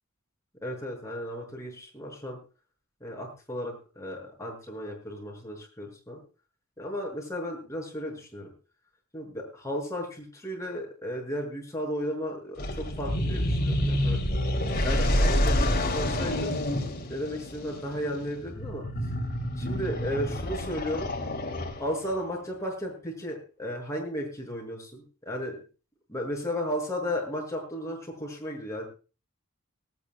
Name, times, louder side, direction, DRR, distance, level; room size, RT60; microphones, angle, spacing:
voice 1, 0.6-2.4 3.0-6.2 6.8-8.5 9.1-14.2 14.8-16.5 17.1-18.8 19.6-21.1 21.8-25.6 26.1-28.9, equal, 15° left, -1 dB, 6.8 m, -34 dB
sound 1, 12.6-22.1, left 1 dB, 45° left, 3.0 m, -28 dB
19.0 x 19.0 x 2.4 m, 0.35 s
head